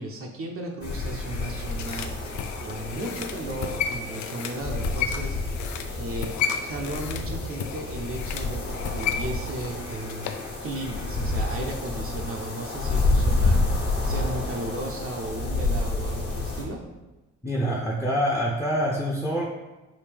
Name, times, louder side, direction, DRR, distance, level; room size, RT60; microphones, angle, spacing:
voice 1, 0.0-2.4 2.6-5.6 5.9-16.9, right 1 dB, 45° right, 1 dB, 0.6 m, -35 dB
sound 1, 0.8-16.6, left 2 dB, 50° left, 1.3 m, -29 dB
sound 2, 1.0-10.5 10.8-10.9, left 7 dB, 75° left, 0.5 m, -34 dB
voice 2, 17.4-19.5, equal, 10° left, -3 dB, 0.6 m, -25 dB
5.0 x 2.7 x 3.4 m, 1.1 s
cardioid pair, 90°, 30 cm